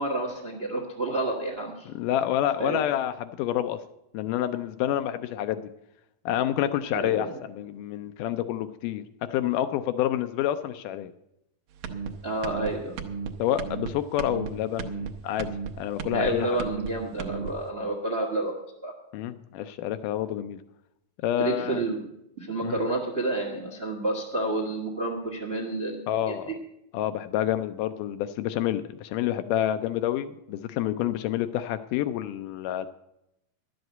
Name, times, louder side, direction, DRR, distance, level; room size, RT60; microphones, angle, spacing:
voice 1, 0.0-1.9 2.6-2.8 6.9-7.4 12.2-12.9 16.1-18.6 18.8-18.9 21.4-22.0 22.4-26.6, right 2 dB, 55° right, 2 dB, 0.6 m, -30 dB
voice 2, 2.0-3.8 4.1-5.7 6.3-9.0 9.3-11.1 13.4-15.5 15.8-16.6 19.1-20.6 21.2-21.8 22.6-22.8 26.1-26.5 26.9-32.9, left 11 dB, 80° left, 10 dB, 2.0 m, -28 dB
sound 1, 11.8-12.1 12.4-12.7 13.0-13.3 13.6-13.9 14.2-14.5 14.8-15.1 15.4-15.7 16.0-16.3 16.6-16.9 17.2-17.5, right 6 dB, 70° right, 2.2 m, -33 dB
12.0 x 7.9 x 7.9 m, 0.85 s
omnidirectional pair, 4.0 m